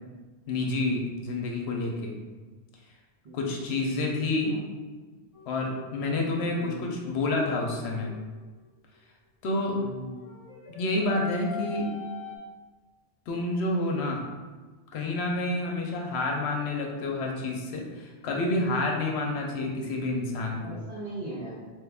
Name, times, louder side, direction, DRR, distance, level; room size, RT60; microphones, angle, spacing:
voice 1, 0.5-2.2 3.3-4.5 5.5-8.1 9.4-9.7 10.7-11.8 13.3-14.2 14.9-20.7, left 2 dB, 75° left, 0 dB, 0.8 m, -29 dB
voice 2, 3.2-4.6 6.4-7.0 9.7-10.2 16.1-16.3 20.6-21.6, right 2 dB, 60° right, -12 dB, 1.1 m, -40 dB
sound 1, 5.3-8.3 10.0-12.4, left 5 dB, 50° left, 0.4 m, -43 dB
3.1 x 2.3 x 3.4 m, 1.3 s
omnidirectional pair, 1.1 m